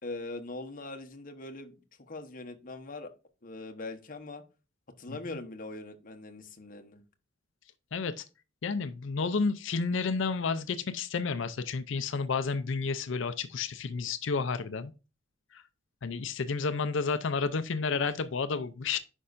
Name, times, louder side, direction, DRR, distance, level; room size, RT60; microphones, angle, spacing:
voice 1, 0.0-1.7 2.1-3.1 3.4-4.4 5.0-7.0, left 2 dB, 45° left, 1.0 m, -41 dB
voice 2, 7.9-8.2 8.6-14.9 15.5-15.6 16.0-19.0, left 4 dB, 65° left, 0.5 m, -31 dB
9.8 x 5.4 x 2.5 m
head